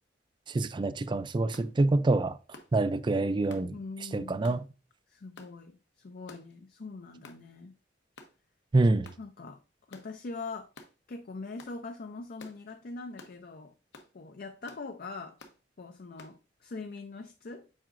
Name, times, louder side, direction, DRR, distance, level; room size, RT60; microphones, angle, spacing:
voice 1, 0.5-2.4 2.7-3.8 4.1-4.6 8.7-9.1, right 2 dB, 25° right, 0.4 m, -26 dB
sound 1, 1.5-1.7 2.5-2.7 3.5-3.7 4.4-4.6 5.4-5.5 6.3-6.5 7.2-7.4 8.2-8.4 9.0-9.2 9.9-10.1 10.7-10.9 11.6-11.8 12.4-12.6 13.2-13.4 13.9-14.1 14.7-14.9 15.4-15.6 16.2-16.4, left 3 dB, 70° left, 1.0 m, -51 dB
voice 2, 3.7-4.6 5.1-7.7 9.2-9.6 9.9-10.7 11.1-13.7 14.1-15.4 15.8-17.7, left 3 dB, 55° left, 0.5 m, -42 dB
7.5 x 5.0 x 2.5 m
head